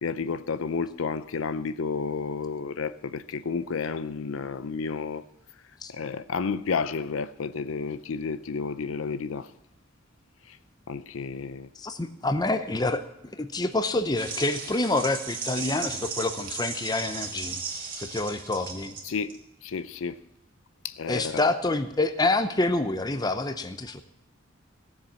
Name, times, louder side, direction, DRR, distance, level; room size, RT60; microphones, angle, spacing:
voice 1, 0.0-5.2 5.9-9.5 10.5-10.6 10.9-11.7 19.0-20.2 20.8-21.4, left 5 dB, 85° left, 0.5 m, -31 dB
voice 2, 11.8-13.0 13.4-17.6 18.0-18.9 21.1-24.0, left 2 dB, 20° left, 0.7 m, -27 dB
sound 1, 14.2-19.4, right 5 dB, 45° right, 2.2 m, -36 dB
15.5 x 7.2 x 7.5 m
head